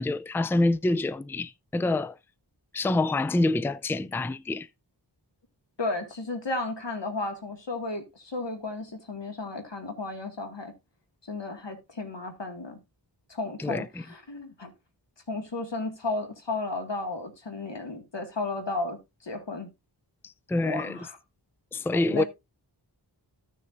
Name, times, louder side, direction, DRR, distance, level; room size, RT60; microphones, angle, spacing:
voice 1, 0.0-2.1 2.7-4.7 13.6-13.9 20.2-21.1 21.7-22.2, left 2 dB, 5° left, 0.4 m, -26 dB
voice 2, 5.8-10.7 11.2-12.8 13.3-14.7 15.3-19.7 20.6-21.2 21.9-22.2, left 2 dB, 75° left, 2.1 m, -33 dB
14.5 x 6.6 x 2.6 m
wide cardioid pair, 60°, 43 cm